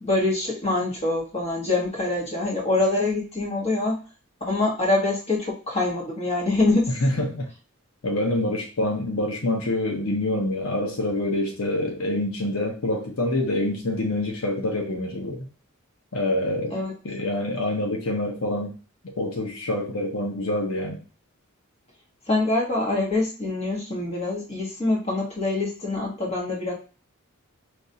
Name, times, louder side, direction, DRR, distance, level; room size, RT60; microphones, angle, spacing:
voice 1, 0.0-4.0 4.5-7.0 16.7-16.9 22.3-26.7, left 2 dB, 30° left, -2 dB, 1.4 m, -25 dB
voice 2, 7.0-7.5 8.0-15.5 16.1-16.8 17.0-18.7 19.0-21.0, left 1 dB, 80° left, 2 dB, 0.9 m, -26 dB
5.2 x 3.0 x 2.8 m, 0.35 s
head